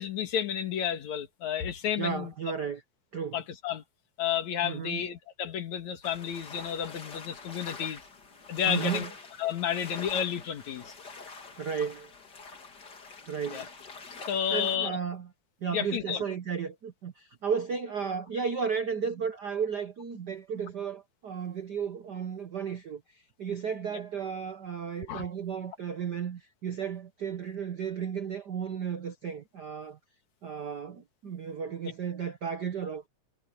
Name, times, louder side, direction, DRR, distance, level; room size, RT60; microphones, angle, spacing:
voice 1, 0.0-2.3 3.3-3.8 4.2-8.0 8.5-9.1 9.4-10.9 13.5-13.7 14.3-15.0 15.7-16.2 23.9-24.0 25.1-25.3 31.8-31.9, left 9 dB, 75° left, 3.0 m, -31 dB
voice 2, 2.0-2.8 3.1-3.4 4.6-5.0 8.7-9.1 11.6-12.1 13.3-13.7 14.5-15.3 15.6-30.0 30.4-33.1, right 7 dB, 65° right, 1.0 m, -34 dB
sound 1, 6.0-14.8, left 4 dB, 35° left, 3.0 m, -45 dB
omnidirectional pair, 3.3 m